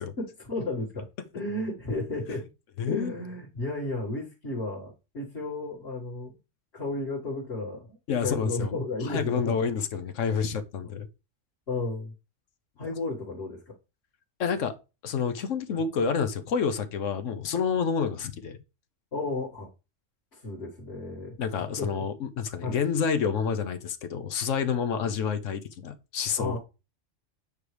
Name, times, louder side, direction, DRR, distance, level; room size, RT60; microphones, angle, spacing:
voice 1, 0.2-1.1 1.3-2.4 2.9-6.3 6.7-9.6 11.7-12.1 12.8-13.7 15.7-15.8 19.1-19.7 20.3-21.4 21.8-22.0 22.6-22.8 26.4-26.6, left 2 dB, 55° left, 2.3 m, -33 dB
voice 2, 2.8-3.2 8.1-8.7 9.0-11.1 14.4-14.7 15.0-18.6 21.4-26.6, left 6 dB, 75° left, 1.1 m, -28 dB
8.9 x 4.7 x 3.3 m
omnidirectional pair, 1.3 m